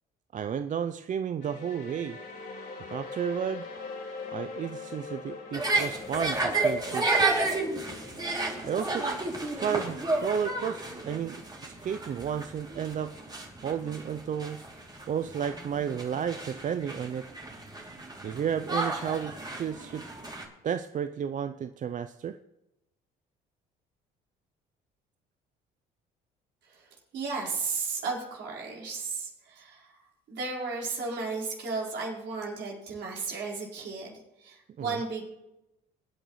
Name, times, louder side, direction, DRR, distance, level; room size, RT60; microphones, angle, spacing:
voice 1, 0.3-2.2 2.9-3.6 4.3-7.2 8.6-9.0 9.6-11.4 11.6-13.1 13.6-14.6 15.1-17.2 18.2-20.0 20.6-22.4 34.8-35.0, right 8 dB, 40° right, 10 dB, 0.5 m, -32 dB
sound 1, 1.4-11.1, left 4 dB, 55° left, 3.6 m, -43 dB
sound 2, 5.5-20.4, right 2 dB, 20° right, 3.0 m, -32 dB
voice 2, 27.1-30.0 30.3-35.2, right 4 dB, 60° right, -3 dB, 4.7 m, -34 dB
22.5 x 9.0 x 3.2 m, 0.92 s
supercardioid pair, 65°, 20 cm